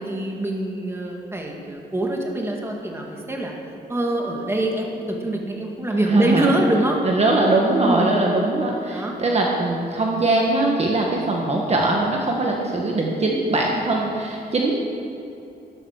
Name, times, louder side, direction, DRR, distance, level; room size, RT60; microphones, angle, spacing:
voice 1, 0.0-3.5 3.9-7.0 7.8-8.1 8.9-9.1, right 1 dB, 15° right, 0 dB, 2.0 m, -24 dB
voice 2, 6.0-6.5 7.0-14.8, right 2 dB, 40° right, -1 dB, 1.5 m, -21 dB
13.0 x 12.5 x 6.5 m, 2.8 s
wide cardioid pair, 150°, 17 cm